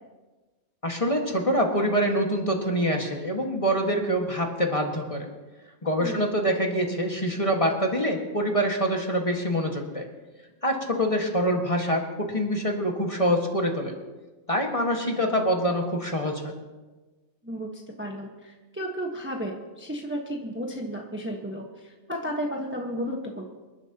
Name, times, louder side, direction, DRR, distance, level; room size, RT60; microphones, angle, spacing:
voice 1, 0.8-5.3 5.8-10.1 10.6-13.9 14.5-16.5, equal, 25° left, 1 dB, 1.8 m, -25 dB
voice 2, 17.4-23.5, equal, 10° right, 0 dB, 1.2 m, -33 dB
27.0 x 11.5 x 2.9 m, 1.2 s
omnidirectional pair, 1.5 m